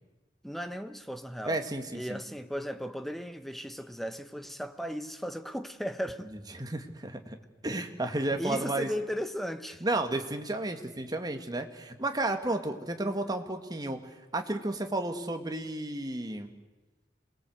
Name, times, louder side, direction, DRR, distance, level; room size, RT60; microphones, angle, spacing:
voice 1, 0.4-1.6 1.9-6.3 8.4-9.8, equal, ahead, 1.1 m, -36 dB
voice 2, 1.5-2.2 6.5-7.4 7.6-8.9 9.8-14.0 14.3-16.5, right 2 dB, 20° right, 2.0 m, -32 dB
27.5 x 20.5 x 7.9 m
head